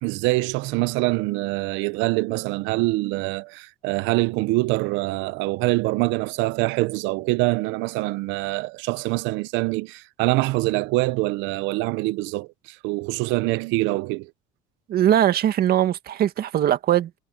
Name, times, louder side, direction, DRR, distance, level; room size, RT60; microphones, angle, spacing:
voice 1, 0.0-14.3, right 21 dB, 85° right, 0.8 m, -24 dB
voice 2, 14.9-17.2, right 11 dB, 55° right, 1.8 m, -20 dB
cardioid pair, 105°, 19 cm